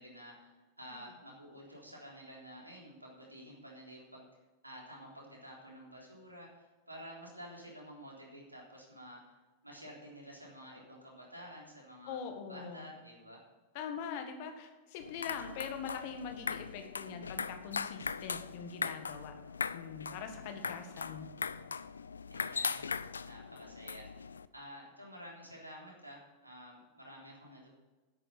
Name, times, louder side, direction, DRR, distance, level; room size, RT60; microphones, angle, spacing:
voice 1, 0.0-4.3 4.6-9.2 9.6-12.2 12.5-13.4 22.3-24.1 24.5-27.7, equal, 85° right, -2 dB, 3.5 m, -51 dB
voice 2, 12.1-12.9 13.7-19.3 19.7-21.3, left 6 dB, 50° left, 6 dB, 1.8 m, -43 dB
sound 1, 15.0-24.5, left 5 dB, 75° left, 0.4 m, -40 dB
10.0 x 8.8 x 7.1 m, 1.2 s
figure-of-eight pair, 90°, 0 cm